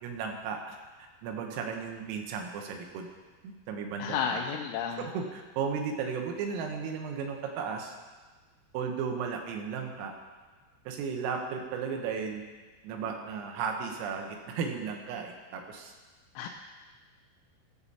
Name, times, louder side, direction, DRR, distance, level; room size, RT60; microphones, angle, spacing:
voice 1, 0.0-0.8 1.2-3.1 3.4-4.4 5.1-8.0 8.7-10.1 10.9-12.4 12.8-15.9, right 6 dB, 90° right, 3 dB, 3.8 m, -35 dB
voice 2, 4.0-5.1 16.4-16.5, left 7 dB, 90° left, 1 dB, 3.3 m, -32 dB
15.5 x 7.0 x 4.2 m, 1.3 s
omnidirectional pair, 5.8 m